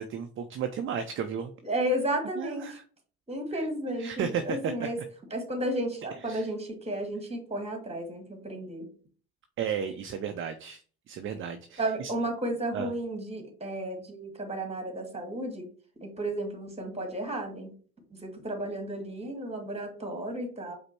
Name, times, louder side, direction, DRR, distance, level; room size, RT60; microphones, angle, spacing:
voice 1, 0.0-1.5 2.4-2.8 3.5-4.9 6.3-6.4 9.6-10.8 11.1-12.1 12.7-12.9, right 7 dB, 30° right, 7 dB, 0.4 m, -34 dB
voice 2, 1.6-2.8 3.3-5.0 5.3-8.9 11.8-15.7 16.0-17.7 18.1-20.8, right 1 dB, 15° right, 5 dB, 1.3 m, -33 dB
5.0 x 2.0 x 4.3 m, 0.42 s
hypercardioid pair, 55°, 44 cm